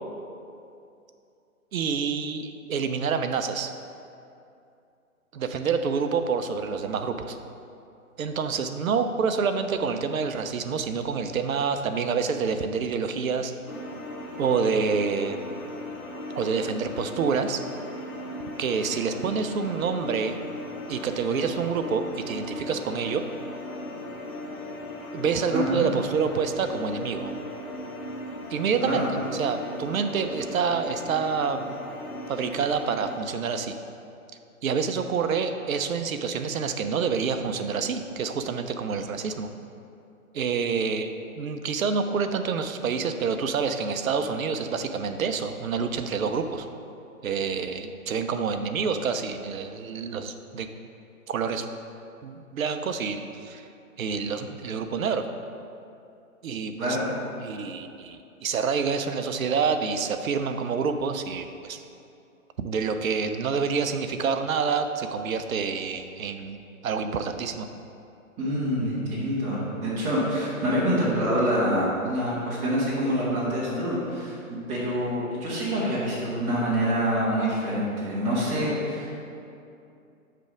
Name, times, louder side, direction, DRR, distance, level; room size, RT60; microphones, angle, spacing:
voice 1, 1.7-3.7 5.3-7.4 8.2-13.5 14.4-15.4 16.3-17.6 18.6-20.4 20.9-23.2 25.1-27.3 28.5-29.0 29.3-31.7 32.3-33.7 34.6-39.5 40.3-46.7 47.2-50.7 51.3-51.7 52.2-53.6 54.0-55.3 56.4-57.0 57.4-61.8 62.6-67.7, right 5 dB, 70° right, 8 dB, 0.6 m, -27 dB
sound 1, 13.7-33.2, left 1 dB, 90° left, 1.0 m, -38 dB
voice 2, 25.5-25.9 28.8-29.1 56.8-57.0 68.4-79.1, equal, 15° right, -8 dB, 1.1 m, -26 dB
6.7 x 3.3 x 4.9 m, 2.6 s
figure-of-eight pair, 140°, 43 cm